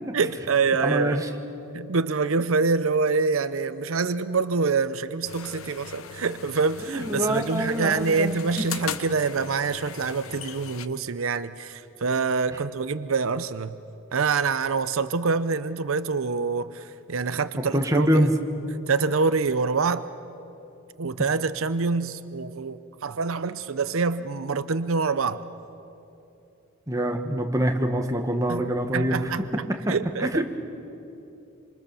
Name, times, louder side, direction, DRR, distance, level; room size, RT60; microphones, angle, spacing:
voice 1, 0.1-1.2 1.7-13.8 14.1-18.3 18.9-20.1 21.0-25.4 28.5-30.4, right 4 dB, 75° right, 12 dB, 0.7 m, -26 dB
voice 2, 0.8-1.3 6.9-8.4 17.7-18.3 26.9-29.3 29.9-30.0 30.2-30.4, right 1 dB, 15° right, 4 dB, 1.5 m, -24 dB
sound 1, 5.2-10.9, left 8 dB, 80° left, 0.8 m, -39 dB
26.0 x 26.0 x 7.0 m, 2.9 s
head